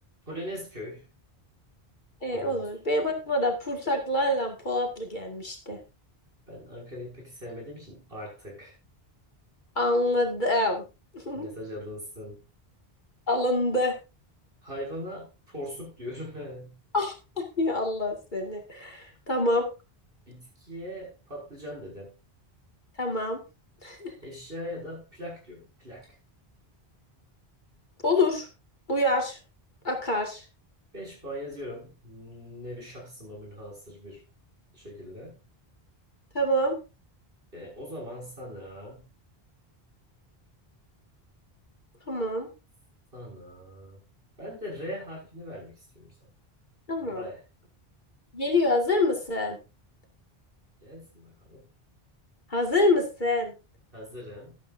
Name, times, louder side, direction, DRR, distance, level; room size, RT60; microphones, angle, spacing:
voice 1, 0.3-1.1 2.3-2.7 6.5-8.8 11.3-12.4 14.6-16.7 20.3-22.1 24.2-26.1 30.9-34.2 34.7-35.4 37.5-39.1 43.1-44.0 44.4-46.3 47.0-47.4 50.8-51.7 53.9-54.6, equal, 60° right, -2 dB, 6.6 m, -40 dB
voice 2, 2.2-5.8 9.8-10.8 11.1-11.5 13.3-14.0 16.9-17.1 17.6-19.7 23.0-23.4 23.8-24.1 28.0-28.5 28.9-29.4 29.8-30.4 36.3-36.8 42.1-42.5 46.9-47.3 48.3-49.6 52.5-53.5, left 1 dB, 50° left, 2 dB, 2.3 m, -26 dB
12.5 x 12.0 x 2.6 m, 0.28 s
omnidirectional pair, 1.0 m